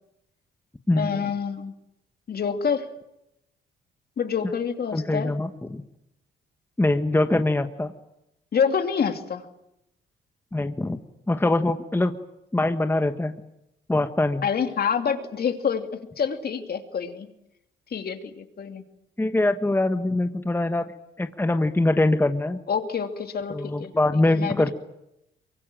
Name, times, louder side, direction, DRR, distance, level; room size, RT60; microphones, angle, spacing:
voice 1, 1.0-1.7 2.3-2.9 4.2-5.3 8.5-9.5 14.4-17.3 17.9-18.8 22.7-24.7, left 6 dB, 50° left, 6 dB, 2.7 m, -27 dB
voice 2, 4.9-5.8 6.8-7.9 10.5-11.0 11.3-12.2 12.5-13.3 13.9-14.4 19.2-20.9 21.2-22.6 23.5-24.7, left 2 dB, 10° left, 8 dB, 1.3 m, -23 dB
24.0 x 23.0 x 9.0 m, 0.84 s
cardioid pair, 90°, 20 cm